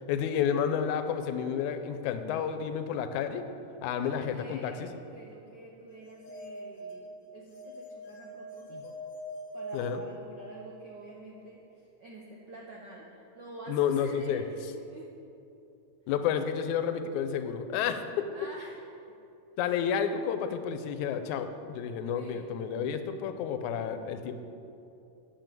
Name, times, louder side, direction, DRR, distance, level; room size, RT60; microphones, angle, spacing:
voice 1, 0.1-3.4 3.8-4.9 8.7-8.8 9.7-10.0 13.7-14.4 16.1-18.3 19.6-24.4, left 8 dB, 90° left, 9 dB, 2.1 m, -30 dB
voice 2, 3.9-8.9 9.5-15.1 18.3-18.8 22.1-22.5, right 2 dB, 70° right, -2 dB, 1.0 m, -47 dB
sound 1, 6.0-10.8, equal, 70° left, 2.2 m, -43 dB
9.1 x 7.4 x 7.6 m, 2.7 s
omnidirectional pair, 3.3 m